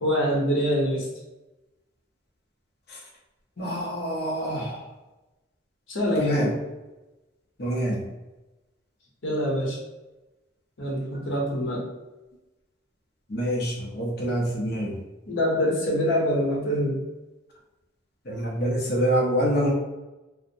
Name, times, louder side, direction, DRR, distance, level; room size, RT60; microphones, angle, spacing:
voice 1, 0.0-1.1 5.9-6.5 9.2-9.8 10.8-11.8 15.3-17.0, equal, 80° left, -3 dB, 0.8 m, -25 dB
voice 2, 3.6-4.8 6.2-6.5 7.6-8.0 13.3-15.0 18.3-19.7, equal, 50° left, -2 dB, 0.6 m, -26 dB
2.5 x 2.1 x 2.6 m, 1.1 s
head